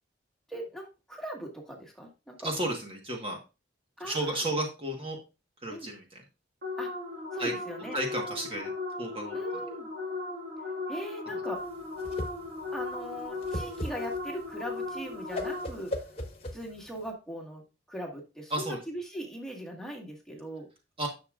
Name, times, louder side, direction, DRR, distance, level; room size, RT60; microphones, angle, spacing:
voice 1, 0.5-2.5 4.0-4.4 5.7-5.9 6.8-6.9 7.3-8.0 9.3-9.9 10.9-11.7 12.7-15.9 16.5-17.6 17.9-20.7, equal, 5° left, 0 dB, 1.7 m, -40 dB
voice 2, 2.4-3.4 4.0-5.2 5.6-6.2 7.4-7.5 7.9-8.7 9.0-9.4 18.5-18.8 21.0-21.1, right 1 dB, 30° right, 1 dB, 1.3 m, -32 dB
sound 1, 6.6-16.0, left 3 dB, 55° right, 1.9 m, -37 dB
Whoosh swoosh swish, 11.6-17.1, left 1 dB, 30° left, 1.3 m, -38 dB
11.0 x 6.4 x 2.5 m, 0.29 s
head